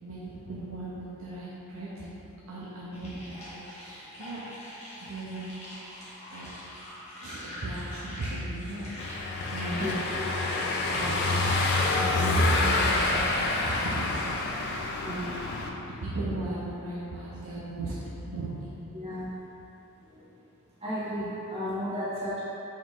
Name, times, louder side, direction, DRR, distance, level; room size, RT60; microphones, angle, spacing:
voice 1, 0.0-2.2 2.5-4.4 5.0-5.5 5.9-6.5 7.2-8.9 9.5-10.0 10.5-10.6 10.9-15.3 15.8-18.7, right 2 dB, 65° right, -7 dB, 0.6 m, -37 dB
sound 1, 2.9-12.1, left 1 dB, 30° left, 1.0 m, -42 dB
Car passing by / Engine, 9.0-15.7, left 2 dB, 45° left, 0.4 m, -27 dB
voice 2, 15.0-15.4 18.9-19.4 20.1-20.3 20.8-22.4, equal, 25° right, -12 dB, 1.4 m, -34 dB
4.3 x 2.9 x 3.6 m, 2.9 s
head